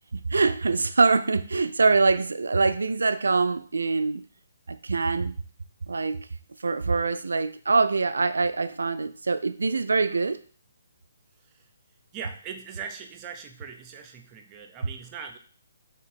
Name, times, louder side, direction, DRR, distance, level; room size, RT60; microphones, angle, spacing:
voice 1, 0.1-4.3 4.7-5.4 5.9-6.3 6.6-10.4, right 4 dB, 90° right, 0.4 m, -24 dB
voice 2, 12.1-15.4, right 6 dB, 20° right, 0.5 m, -40 dB
3.4 x 2.9 x 4.5 m
hypercardioid pair, 160°, 0 cm